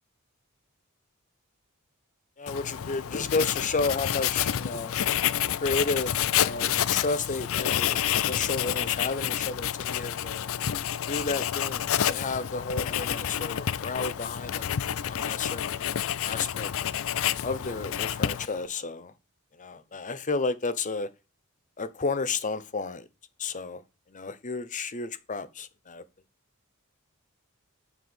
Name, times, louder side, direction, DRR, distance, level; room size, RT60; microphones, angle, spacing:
voice 1, 2.4-4.9 5.6-10.4 11.1-16.7 17.4-19.1 19.6-21.1 21.8-23.1 23.4-23.8 24.1-26.0, left 3 dB, 35° left, 0.8 m, -32 dB
Writing, 2.5-18.7, left 10 dB, 70° left, 0.5 m, -29 dB
7.0 x 6.4 x 5.6 m
head